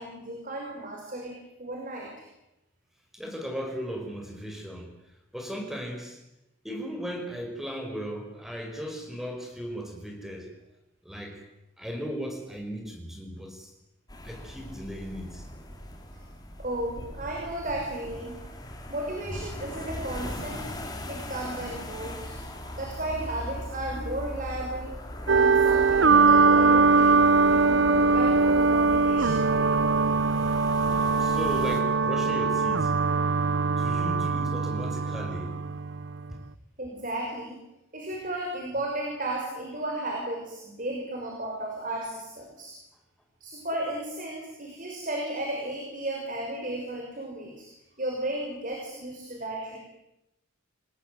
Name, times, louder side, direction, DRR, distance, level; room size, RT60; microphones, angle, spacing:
voice 1, 0.0-1.3 1.6-2.3 16.1-16.2 16.6-18.3 18.9-20.6 21.1-22.4 22.8-25.0 25.3-27.2 27.5-30.1 36.8-37.6 37.9-42.8 43.4-47.7 48.0-49.8, right 1 dB, 40° right, 1 dB, 5.6 m, -34 dB
voice 2, 3.1-4.9 5.3-6.2 6.6-10.5 11.0-11.4 11.8-13.7 14.2-15.4 30.9-32.9 33.8-35.6, equal, ahead, 3 dB, 5.4 m, -36 dB
sound 1, 14.1-31.8, left 1 dB, 20° left, 4.6 m, -39 dB
sound 2, 25.3-36.3, right 4 dB, 65° right, 0.9 m, -22 dB
28.5 x 20.0 x 9.3 m, 0.92 s
head